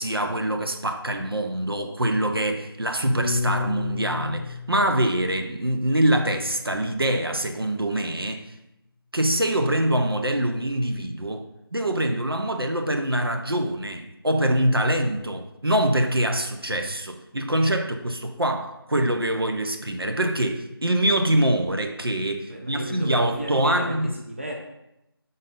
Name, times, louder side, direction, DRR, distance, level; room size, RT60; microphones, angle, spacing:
voice 1, 0.0-8.5 9.1-11.4 11.7-24.1, right 1 dB, 70° right, 0.9 m, -24 dB
Piano, 3.2-7.6, left 4 dB, 60° left, 0.5 m, -33 dB
voice 2, 22.5-24.5, equal, 30° right, 0.7 m, -34 dB
5.3 x 4.1 x 5.2 m
figure-of-eight pair, 170°, 13 cm